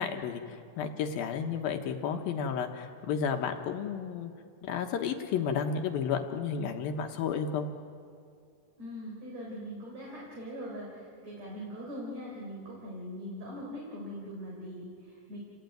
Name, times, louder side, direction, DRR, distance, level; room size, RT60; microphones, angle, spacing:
voice 1, 0.0-4.3 4.6-7.7, left 7 dB, 75° left, 4 dB, 2.9 m, -32 dB
voice 2, 8.8-15.4, equal, 45° right, -4 dB, 5.2 m, -41 dB
28.0 x 18.5 x 9.3 m, 2.3 s
omnidirectional pair, 4.4 m